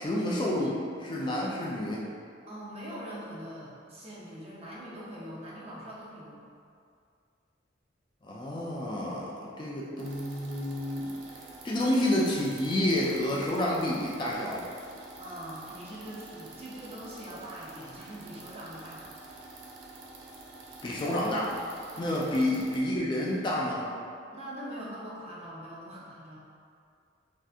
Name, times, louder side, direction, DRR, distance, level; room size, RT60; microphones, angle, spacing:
voice 1, 0.0-2.0 8.2-11.1 11.6-14.6 20.8-21.5 22.0-23.9, left 1 dB, 25° left, -4 dB, 0.3 m, -29 dB
voice 2, 2.5-6.4 15.2-19.1 21.9-22.2 24.3-26.4, equal, 35° right, -6 dB, 0.6 m, -42 dB
sound 1, 10.0-22.8, right 3 dB, 80° right, 0.5 m, -48 dB
3.3 x 2.7 x 2.4 m, 2.3 s
head